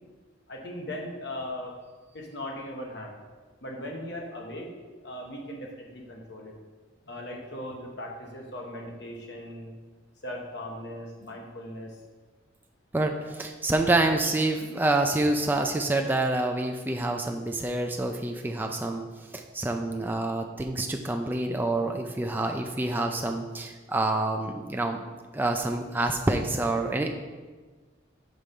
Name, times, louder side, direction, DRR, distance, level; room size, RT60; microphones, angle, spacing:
voice 1, 0.5-1.7 2.1-3.2 3.6-4.7 5.0-6.5 7.1-9.8 10.2-12.0 13.3-13.4, left 1 dB, 60° left, -1 dB, 1.2 m, -38 dB
voice 2, 12.9-19.0 19.3-27.1, right 2 dB, 10° right, 3 dB, 0.4 m, -27 dB
6.4 x 4.3 x 5.2 m, 1.4 s
head